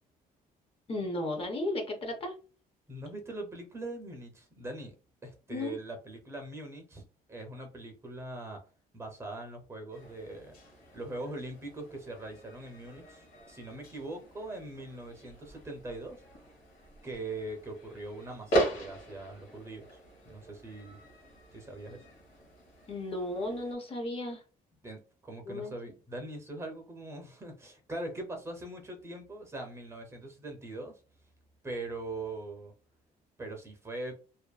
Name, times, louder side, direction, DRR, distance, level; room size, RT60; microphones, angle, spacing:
voice 1, 0.9-2.3 5.5-5.7 22.9-24.4 25.5-25.7, left 2 dB, 35° left, 4 dB, 0.5 m, -34 dB
voice 2, 2.9-4.9 5.2-8.6 8.9-10.5 10.9-16.2 17.0-20.0 20.3-21.0 21.5-22.0 24.8-30.9 31.6-32.7 33.4-34.1, right 2 dB, 15° right, 3 dB, 0.6 m, -41 dB
sound 1, 9.9-23.7, right 1 dB, 75° left, 1.1 m, -39 dB
2.5 x 2.3 x 2.3 m, 0.35 s
cardioid pair, 155°, 16 cm